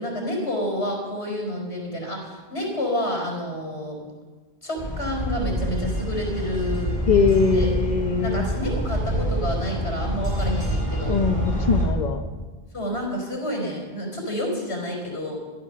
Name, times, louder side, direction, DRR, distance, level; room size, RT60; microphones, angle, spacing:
voice 1, 0.0-4.0 4.6-7.0 7.5-7.7 8.2-11.2 12.7-15.4, left 1 dB, 90° left, 1 dB, 4.9 m, -29 dB
sound 1, 4.8-11.9, equal, 40° right, 4.6 m, -26 dB
voice 2, 7.1-8.4 11.1-12.2, left 5 dB, 45° left, 7 dB, 0.9 m, -21 dB
15.5 x 12.5 x 6.8 m, 1.4 s
omnidirectional pair, 1.1 m